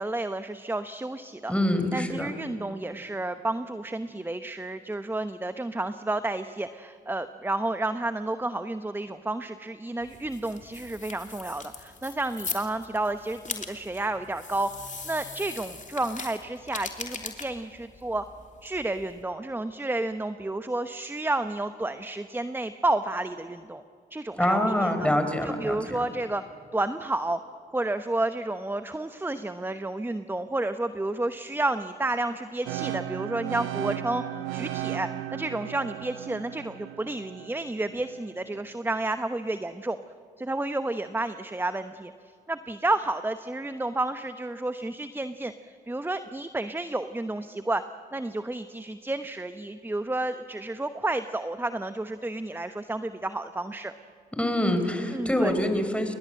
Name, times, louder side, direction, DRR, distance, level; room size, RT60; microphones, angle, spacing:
voice 1, 0.0-1.5 1.9-14.7 15.0-18.2 18.6-23.8 24.1-25.1 25.4-26.4 26.7-27.4 27.7-40.0 40.4-42.1 42.5-47.8 48.1-53.9 55.1-55.5, right 2 dB, 10° right, 11 dB, 1.0 m, -31 dB
voice 2, 1.5-2.3 24.4-26.0 54.3-56.1, left 1 dB, 5° left, 7 dB, 4.5 m, -25 dB
sound 1, 10.0-19.2, left 4 dB, 40° left, 3.2 m, -40 dB
sound 2, 32.7-38.6, right 12 dB, 80° right, 0.9 m, -35 dB
29.5 x 20.0 x 7.7 m, 2.3 s
hypercardioid pair, 45°, 20 cm